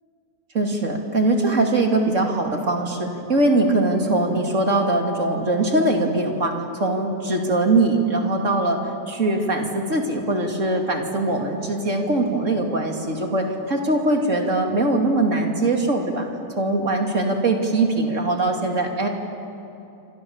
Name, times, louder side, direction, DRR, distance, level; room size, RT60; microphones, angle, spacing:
voice 1, 0.5-8.8 9.1-16.3 16.6-19.1, right 2 dB, 50° right, 2 dB, 3.0 m, -21 dB
28.5 x 26.0 x 7.2 m, 2.8 s
omnidirectional pair, 1.7 m